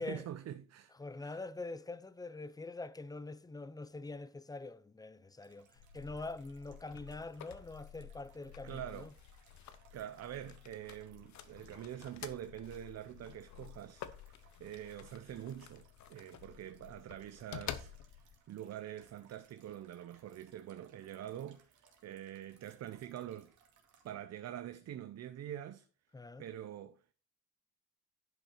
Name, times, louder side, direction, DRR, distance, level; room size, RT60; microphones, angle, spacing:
voice 1, 0.0-0.9 1.2-1.4 8.6-9.1 9.5-14.1 14.6-23.6 24.0-25.9 26.4-27.1, right 11 dB, 60° right, 0.6 m, -45 dB
voice 2, 1.0-9.1 26.1-26.4, left 3 dB, 10° left, 0.6 m, -44 dB
sound 1, 5.4-24.1, right 6 dB, 75° right, 2.4 m, -69 dB
sound 2, 5.8-18.4, left 10 dB, 70° left, 0.9 m, -51 dB
10.5 x 5.6 x 4.4 m
cardioid pair, 90°, 30 cm